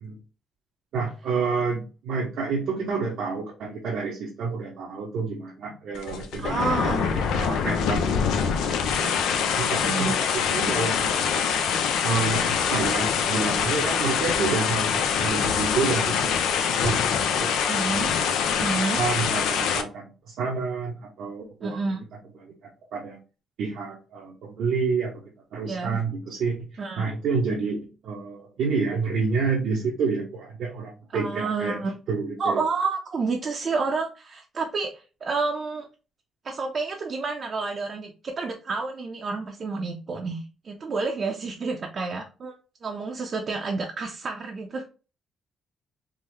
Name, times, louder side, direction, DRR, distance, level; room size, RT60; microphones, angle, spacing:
voice 1, 0.9-11.1 11.5-11.6 12.0-17.0 17.4-17.6 18.2-18.4 19.0-21.8 22.4-22.5 22.9-23.2 23.6-25.1 25.5-26.6 27.0-31.8 32.1-32.6, right 4 dB, 80° right, -3 dB, 0.8 m, -29 dB
sound 1, 5.9-19.8, left 7 dB, 85° left, 0.4 m, -24 dB
voice 2, 6.4-7.1 9.8-10.2 17.7-18.1 18.6-19.0 21.6-22.0 25.7-26.0 26.8-27.1 31.1-31.9 32.4-35.9 36.4-42.6 42.8-44.8, right 4 dB, 45° right, 1 dB, 0.6 m, -29 dB
3.7 x 2.0 x 3.1 m, 0.33 s
cardioid pair, 90°, 0 cm